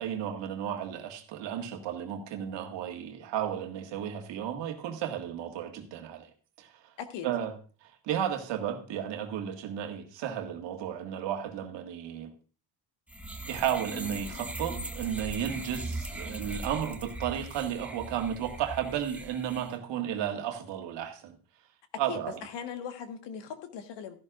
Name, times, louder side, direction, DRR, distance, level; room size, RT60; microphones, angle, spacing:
voice 1, 0.0-6.3 6.6-6.7 7.2-7.5 7.8-12.3 13.5-21.4 22.0-22.3, right 9 dB, 65° right, 4 dB, 1.8 m, -33 dB
sound 1, 13.1-19.7, right 1 dB, 5° right, 1.2 m, -39 dB
voice 2, 22.1-24.1, left 8 dB, 65° left, 8 dB, 1.5 m, -39 dB
14.0 x 11.0 x 2.5 m, 0.37 s
supercardioid pair, 90°, 46 cm